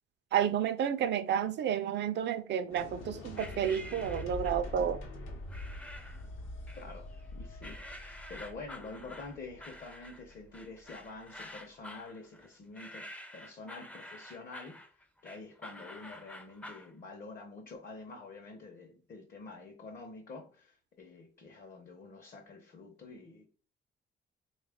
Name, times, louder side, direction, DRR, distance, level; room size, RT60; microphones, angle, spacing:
voice 1, 0.3-5.0, right 9 dB, 60° right, 0.4 m, -31 dB
sound 1, 2.7-10.8, left 1 dB, 90° left, 0.9 m, -44 dB
sound 2, 3.4-4.7 5.5-6.3 6.7-7.3 7.6-16.9, left 1 dB, 5° left, 0.4 m, -49 dB
voice 2, 6.8-13.1 13.3-14.8 15.2-23.5, left 3 dB, 45° left, 0.7 m, -47 dB
3.4 x 2.3 x 3.4 m
cardioid pair, 90°, 20 cm